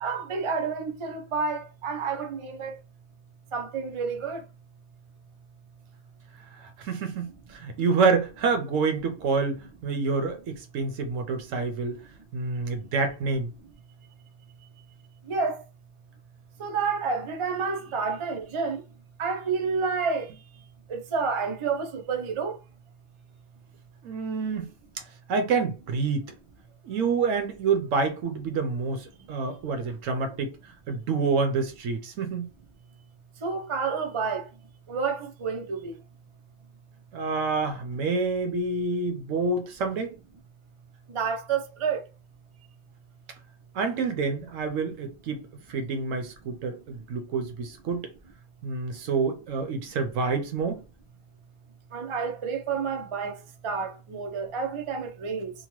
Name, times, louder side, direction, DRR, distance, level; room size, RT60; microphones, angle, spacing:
voice 1, 0.0-2.8 3.5-4.4 15.3-15.6 16.6-18.8 19.2-20.3 20.9-22.6 33.4-34.4 34.9-35.9 41.1-42.0 51.9-53.4 53.6-55.5, right 5 dB, 55° right, 0.3 m, -29 dB
voice 2, 6.6-12.0 12.3-13.5 24.0-24.7 25.3-26.3 26.8-30.5 30.9-32.5 37.1-40.2 43.7-48.1 48.6-50.8, right 4 dB, 80° right, 1.1 m, -28 dB
2.9 x 2.2 x 3.0 m
omnidirectional pair, 1.3 m